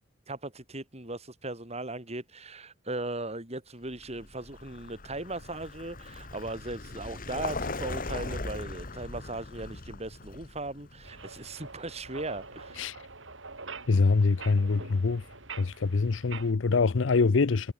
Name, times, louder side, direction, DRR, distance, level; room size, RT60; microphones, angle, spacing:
voice 1, 0.3-12.9, right 2 dB, 35° right, 6.7 m, -38 dB
Vehicle, 3.9-12.7, left 3 dB, 45° left, 2.1 m, -40 dB
sound 1, 11.0-16.5, right 4 dB, 80° right, 6.3 m, -45 dB
voice 2, 13.9-15.3 15.6-17.7, left 4 dB, 75° left, 0.6 m, -24 dB
head